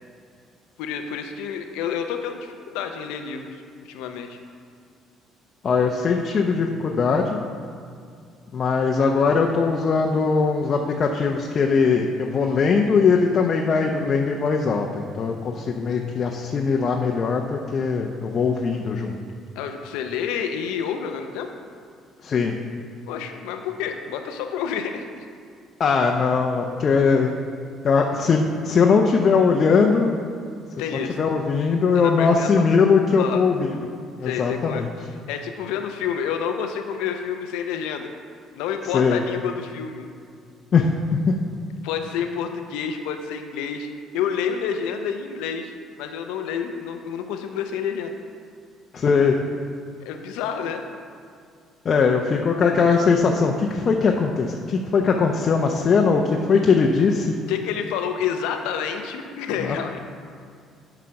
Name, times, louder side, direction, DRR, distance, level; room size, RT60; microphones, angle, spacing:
voice 1, 0.8-4.4 19.6-21.5 23.1-25.2 30.8-31.2 31.9-32.6 33.2-33.4 34.2-34.8 35.3-38.1 38.5-40.1 41.8-43.9 44.1-48.2 50.0-50.8 57.5-60.0, left 7 dB, 90° left, 5 dB, 0.6 m, -29 dB
voice 2, 5.6-7.4 8.5-19.2 22.2-22.5 25.8-27.3 27.8-30.2 31.2-33.7 34.2-34.9 38.9-39.2 40.7-40.9 41.3-41.4 48.9-49.4 51.8-57.4 59.6-59.8, left 5 dB, 45° left, 2 dB, 0.7 m, -20 dB
7.6 x 5.0 x 5.8 m, 2.3 s
supercardioid pair, 90°, 0 cm